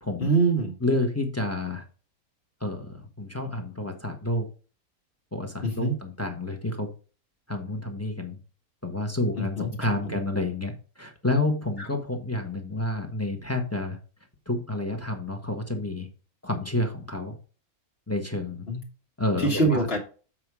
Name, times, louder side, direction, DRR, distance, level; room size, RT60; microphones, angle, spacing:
voice 1, 0.2-0.7 5.6-6.0 9.4-9.7 18.7-18.8 19.4-20.0, right 3 dB, 40° left, -1 dB, 1.6 m, -24 dB
voice 2, 0.8-1.8 2.6-4.5 5.3-6.9 7.5-8.4 8.8-14.0 14.5-16.1 16.4-17.3 18.1-18.7 19.2-19.9, left 2 dB, 10° left, 4 dB, 1.1 m, -29 dB
7.6 x 4.8 x 4.8 m, 0.37 s
omnidirectional pair, 1.5 m